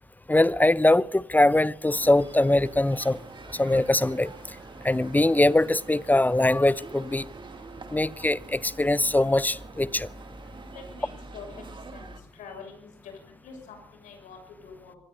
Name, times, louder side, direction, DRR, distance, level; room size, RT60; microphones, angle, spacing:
voice 1, 0.3-3.2 3.5-4.3 4.8-7.3 7.9-10.1, left 1 dB, 10° left, 0.7 m, -22 dB
sound 1, 1.9-12.2, right 3 dB, 35° right, 2.5 m, -45 dB
voice 2, 10.6-15.0, left 5 dB, 65° left, 7.0 m, -46 dB
25.5 x 20.5 x 2.7 m
hypercardioid pair, 45°, 14 cm